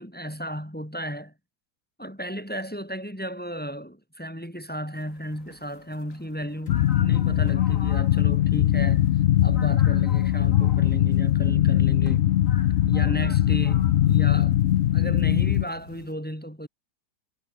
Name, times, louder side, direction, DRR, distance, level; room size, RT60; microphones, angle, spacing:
voice 1, 0.0-1.3 2.0-9.1 9.4-12.3 12.8-14.6 14.9-16.7, equal, 5° left, 6.5 m, -34 dB
sound 1, 4.9-16.1, left 3 dB, 50° left, 3.6 m, -46 dB
sound 2, 6.7-15.7, left 12 dB, 90° left, 0.5 m, -21 dB
omnidirectional pair, 1.8 m